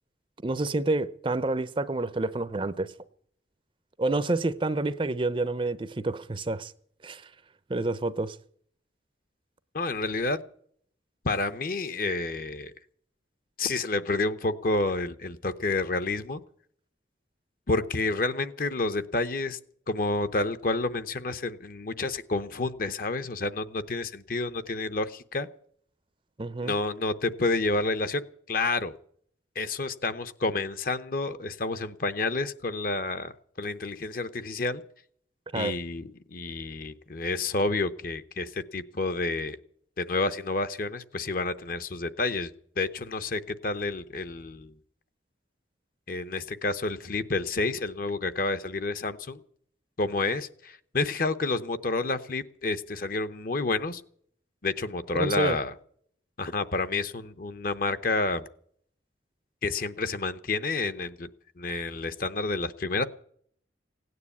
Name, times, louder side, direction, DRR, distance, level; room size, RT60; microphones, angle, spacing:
voice 1, 0.4-2.9 4.0-6.7 7.0-7.3 7.7-8.4 26.4-26.7 35.5-35.7 55.1-55.6, right 2 dB, 30° right, 0.6 m, -28 dB
voice 2, 9.7-10.4 11.2-12.7 13.6-16.4 17.7-19.6 19.9-25.5 26.6-28.9 29.6-34.8 35.5-39.6 40.0-44.7 46.1-49.4 50.0-54.0 54.6-55.7 56.4-58.5 59.6-61.3 61.6-63.0, left 3 dB, 50° left, 0.8 m, -29 dB
17.0 x 9.6 x 8.4 m
head